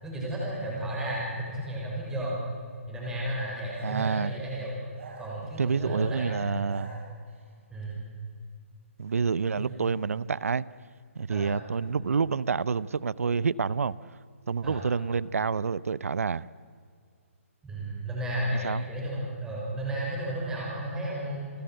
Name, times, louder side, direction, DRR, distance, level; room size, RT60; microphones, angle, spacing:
voice 1, 0.0-2.4 2.9-4.7 5.2-6.7 7.7-8.0 9.6-9.7 11.3-11.5 14.6-14.8 17.6-21.5, right 1 dB, 10° right, 5.8 m, -33 dB
sound 1, 3.7-4.2 4.9-5.9 6.5-7.5, right 3 dB, 60° right, 5.3 m, -47 dB
voice 2, 3.8-4.3 5.6-6.9 9.0-10.6 11.2-13.9 14.5-16.5 18.6-18.8, right 5 dB, 85° right, 0.6 m, -28 dB
29.0 x 14.5 x 7.8 m
hypercardioid pair, 160°, 8 cm